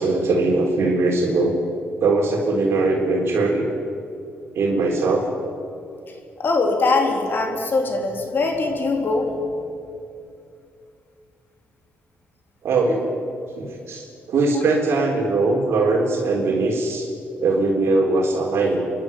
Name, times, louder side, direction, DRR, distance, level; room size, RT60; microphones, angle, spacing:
voice 1, 0.0-1.5 2.0-3.6 4.5-5.3 12.6-13.0 13.6-17.1 17.4-18.8, right 3 dB, 70° right, -2 dB, 4.0 m, -20 dB
voice 2, 6.4-9.3, left 3 dB, 50° left, 2 dB, 4.1 m, -21 dB
28.5 x 11.5 x 9.3 m, 2.5 s
cardioid pair, 95°, 5 cm